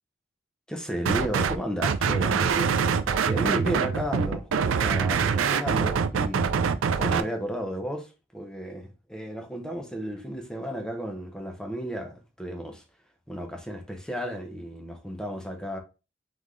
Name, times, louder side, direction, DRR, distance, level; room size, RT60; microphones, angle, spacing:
voice 1, 0.7-6.5 7.0-12.8 13.3-15.8, equal, 5° left, 0.7 m, -33 dB
sound 1, 1.1-1.6 1.8-7.2, right 6 dB, 80° right, 0.4 m, -24 dB
3.8 x 3.5 x 3.1 m
head